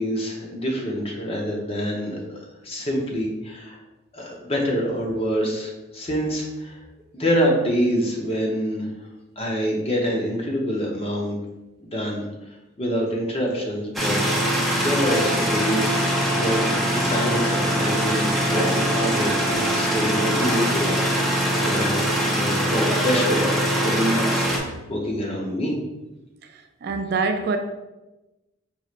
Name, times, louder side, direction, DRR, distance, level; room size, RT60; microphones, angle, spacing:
voice 1, 0.0-2.4 2.6-3.8 4.1-6.8 7.1-8.9 9.4-11.4 11.8-12.2 12.8-14.2 14.8-20.9 21.5-25.8, equal, 30° left, -1 dB, 0.8 m, -26 dB
sound 1, 13.9-24.6, equal, ahead, 0.6 m, -23 dB
sound 2, 15.0-22.4, equal, 55° left, 0.9 m, -31 dB
voice 2, 26.5-27.6, right 4 dB, 55° right, 5 dB, 0.4 m, -25 dB
4.7 x 3.1 x 2.4 m, 1.0 s
head